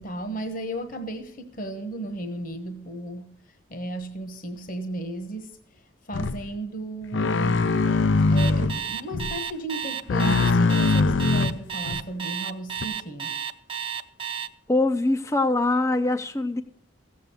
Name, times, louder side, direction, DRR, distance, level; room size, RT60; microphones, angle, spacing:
voice 1, 0.0-3.3 3.7-7.9 8.3-13.3, right 1 dB, 45° left, 1.1 m, -35 dB
sound 1, 6.1-6.4 7.1-8.8 9.1-9.4 10.1-12.0 12.8-12.9, left 3 dB, 70° left, 0.5 m, -22 dB
Alarm, 8.4-14.5, right 8 dB, 25° right, 0.7 m, -32 dB
voice 2, 14.7-16.6, left 2 dB, 15° left, 0.5 m, -23 dB
16.0 x 7.6 x 6.8 m
head